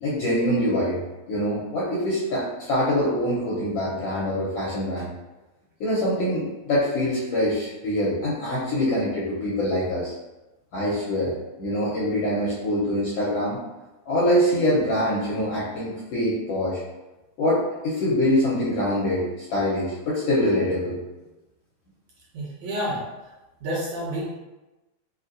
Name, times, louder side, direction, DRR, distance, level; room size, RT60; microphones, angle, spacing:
voice 1, 0.0-1.0 1.3-5.1 5.8-10.1 10.7-11.3 11.6-13.6 14.1-16.8 17.4-21.0, left 1 dB, 75° left, -8 dB, 1.4 m, -24 dB
voice 2, 22.3-23.0 23.6-24.2, equal, 60° right, -10 dB, 2.5 m, -29 dB
5.3 x 2.6 x 2.5 m, 1.1 s
omnidirectional pair, 3.6 m